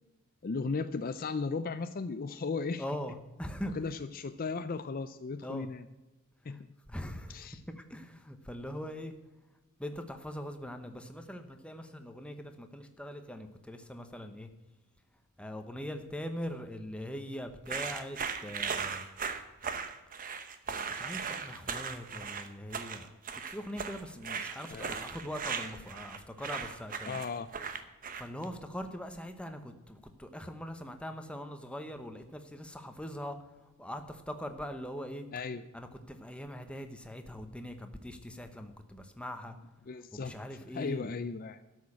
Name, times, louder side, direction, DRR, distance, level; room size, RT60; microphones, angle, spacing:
voice 1, 0.4-2.8 3.7-5.9 6.4-6.7 7.3-7.6 24.7-24.9 27.1-27.5 35.3-35.6 39.9-40.4 40.7-41.6, left 4 dB, 40° left, 11 dB, 0.4 m, -36 dB
voice 2, 2.8-3.7 5.4-5.7 6.5-6.6 6.9-7.5 7.8-9.1 9.8-14.5 15.4-19.0 20.9-23.1 23.4-27.2 28.1-35.3 35.7-39.6 40.1-41.1, equal, 5° left, 7 dB, 1.0 m, -42 dB
sound 1, 17.6-28.4, right 6 dB, 40° right, 1.0 m, -38 dB
13.0 x 6.5 x 8.5 m, 1.1 s
head